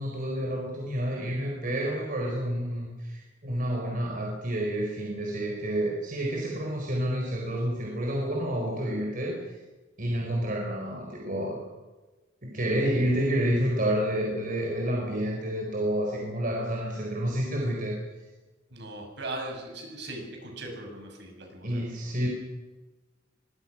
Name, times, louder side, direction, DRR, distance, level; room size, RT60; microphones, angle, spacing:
voice 1, 0.0-9.4 10.0-11.6 12.4-18.0 21.6-22.3, right 1 dB, 50° right, -1 dB, 4.5 m, -29 dB
voice 2, 18.7-22.1, right 2 dB, 65° right, 3 dB, 6.7 m, -39 dB
24.5 x 21.0 x 6.1 m, 1.2 s
head